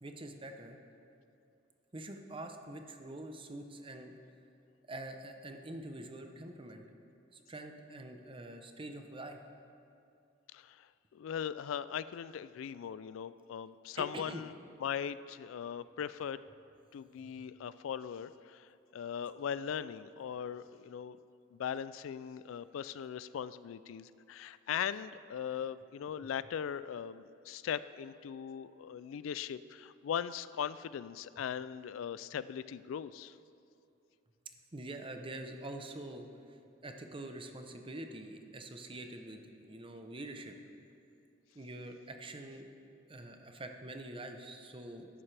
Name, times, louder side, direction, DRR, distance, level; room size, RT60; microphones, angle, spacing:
voice 1, 0.0-0.8 1.9-4.2 4.9-6.9 7.3-9.4 14.0-14.4 17.2-17.4 34.7-40.5 41.5-42.7 43.1-45.1, right 1 dB, 25° right, 5 dB, 0.8 m, -45 dB
voice 2, 10.5-10.9 11.1-14.5 14.8-16.4 16.9-21.2 21.5-33.3, left 8 dB, 80° left, 16 dB, 0.3 m, -39 dB
14.5 x 11.0 x 3.4 m, 2.6 s
head